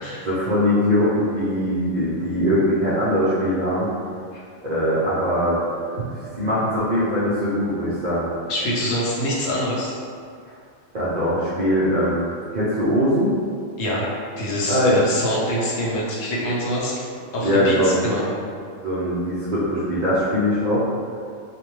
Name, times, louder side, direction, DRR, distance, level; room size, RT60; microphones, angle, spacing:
voice 1, 0.2-3.9 4.6-5.6 6.1-8.3 10.9-12.3 12.5-13.4 14.7-15.0 17.4-18.0 18.8-20.9, equal, 65° right, -10 dB, 0.4 m, -21 dB
voice 2, 8.5-9.9 13.8-14.0 14.4-17.0 17.3-18.3, equal, 80° left, -5 dB, 1.0 m, -25 dB
2.4 x 2.1 x 3.0 m, 2.2 s
omnidirectional pair, 1.3 m